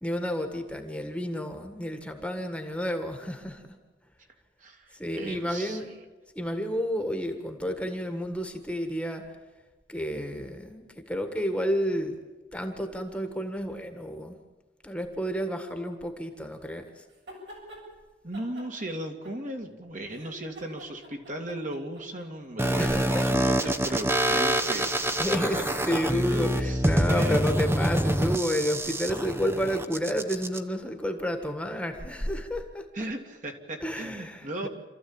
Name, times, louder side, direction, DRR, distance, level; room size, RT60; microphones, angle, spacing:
voice 1, 0.0-3.8 4.9-6.0 6.3-9.2 9.9-12.1 12.5-14.3 14.8-17.0 22.8-23.5 24.3-32.9 33.8-34.7, equal, 5° left, 5 dB, 1.7 m, -31 dB
voice 2, 4.6-5.9 18.2-24.9 26.3-26.8 27.1-27.7 32.9-34.7, right 1 dB, 45° right, 3 dB, 2.4 m, -36 dB
sound 1, 17.1-17.8 18.3-19.7 20.1-22.3, right 1 dB, 70° right, 7.5 m, -47 dB
sound 2, 22.6-30.6, right 1 dB, 15° right, 0.9 m, -26 dB
27.5 x 14.0 x 8.8 m, 1.3 s
head